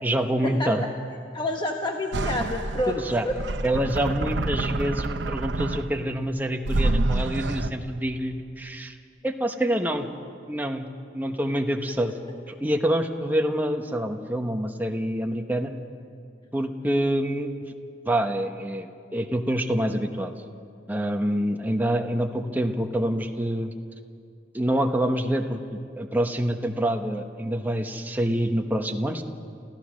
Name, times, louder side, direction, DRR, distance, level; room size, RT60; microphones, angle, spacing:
voice 1, 0.0-0.8 2.9-3.2 3.6-9.0 9.2-10.1 10.5-10.9 11.1-12.1 12.5-15.7 16.5-17.5 18.1-20.3 20.9-23.7 24.5-25.6 26.0-29.2, right 1 dB, 10° right, 4 dB, 1.0 m, -26 dB
voice 2, 1.3-3.4, left 1 dB, 25° left, 2 dB, 1.0 m, -28 dB
sound 1, 2.1-6.1 6.7-7.7, right 2 dB, 80° right, 0.8 m, -27 dB
29.0 x 15.0 x 6.3 m, 2.4 s
head